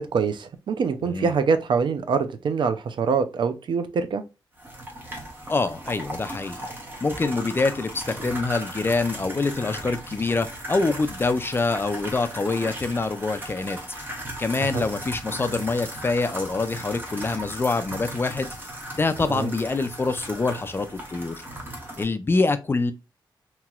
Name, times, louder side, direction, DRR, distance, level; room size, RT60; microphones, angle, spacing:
voice 1, 0.0-4.2 14.7-14.8 19.3-19.5, right 5 dB, 70° right, 0.4 m, -24 dB
sound 1, 4.6-22.0, right 1 dB, 25° right, 1.0 m, -37 dB
voice 2, 5.5-6.7 7.0-13.8 14.4-18.6 18.9-21.4 22.0-22.9, left 3 dB, 25° left, 0.3 m, -25 dB
3.0 x 2.8 x 2.2 m
wide cardioid pair, 100°, 8 cm